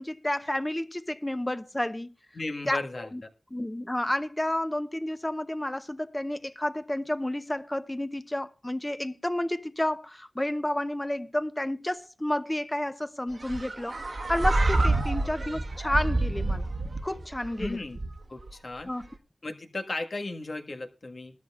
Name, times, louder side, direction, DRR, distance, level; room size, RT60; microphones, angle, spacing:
voice 1, 0.0-2.1 2.7-3.2 3.5-16.7 17.0-17.8 18.8-19.1, left 1 dB, 20° left, 0.8 m, -31 dB
voice 2, 2.3-3.1 15.2-15.3 17.6-18.0 18.3-18.9 19.4-21.4, left 2 dB, 70° left, 1.7 m, -35 dB
sound 1, 13.4-18.5, right 2 dB, 70° right, 1.2 m, -28 dB
19.5 x 13.0 x 2.4 m
cardioid pair, 45°, 0 cm